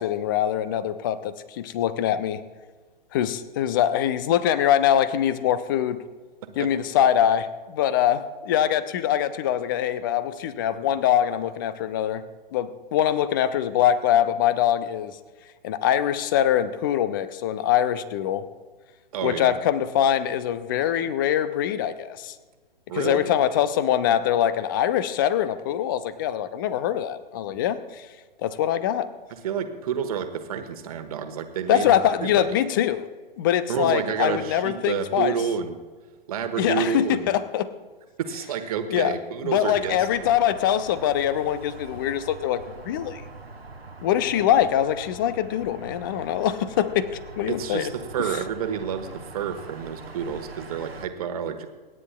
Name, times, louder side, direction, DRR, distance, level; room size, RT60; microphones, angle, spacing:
voice 1, 0.0-2.4 3.1-6.0 6.6-12.2 12.5-15.2 15.6-18.4 19.2-22.3 22.9-28.1 28.4-29.1 31.7-33.1 33.4-35.3 36.6-37.7 38.9-39.1 39.4-43.2 44.0-47.9, left 10 dB, 20° left, 14 dB, 0.5 m, -23 dB
voice 2, 19.1-19.6 21.0-21.1 22.9-23.3 29.3-32.5 33.7-35.8 36.3-37.3 38.2-40.1 47.5-51.7, right 8 dB, 40° right, 7 dB, 1.3 m, -29 dB
sound 1, 39.7-51.1, right 2 dB, 85° right, 1.1 m, -42 dB
27.5 x 9.8 x 2.3 m, 1.4 s
figure-of-eight pair, 120°, 30 cm